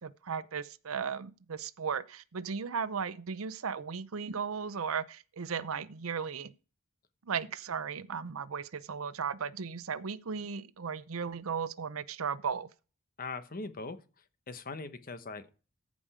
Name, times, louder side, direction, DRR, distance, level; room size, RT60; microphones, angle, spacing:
voice 1, 0.0-6.5 7.3-12.7, right 6 dB, 85° right, 0.7 m, -36 dB
voice 2, 13.2-15.5, left 3 dB, 45° left, 1.0 m, -41 dB
14.5 x 5.2 x 4.9 m
head